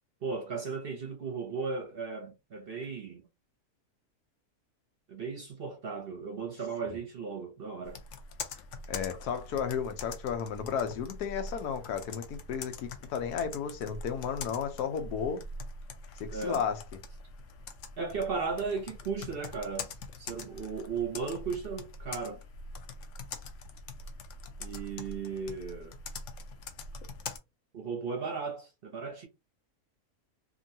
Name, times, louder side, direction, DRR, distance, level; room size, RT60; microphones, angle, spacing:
voice 1, 0.2-3.2 5.1-8.0 16.3-16.6 18.0-19.9 20.2-22.4 24.6-25.9 27.7-29.3, right 5 dB, 50° right, 0.7 m, -36 dB
Computer keyboard, 7.8-27.4, left 3 dB, 65° left, 0.9 m, -44 dB
voice 2, 8.9-15.4 16.2-16.8, left 7 dB, 90° left, 1.2 m, -33 dB
2.9 x 2.7 x 2.6 m
omnidirectional pair, 1.6 m